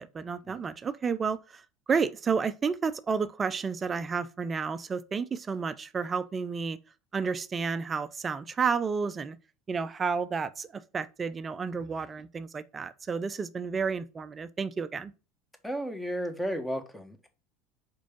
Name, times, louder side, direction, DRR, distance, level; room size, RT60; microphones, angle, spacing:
voice 1, 0.0-1.6 1.9-6.8 7.1-9.4 9.7-15.1, right 5 dB, 30° right, 0.6 m, -31 dB
voice 2, 15.6-17.3, equal, 5° left, 1.5 m, -33 dB
5.1 x 4.6 x 5.2 m
hypercardioid pair, 85°, 0 cm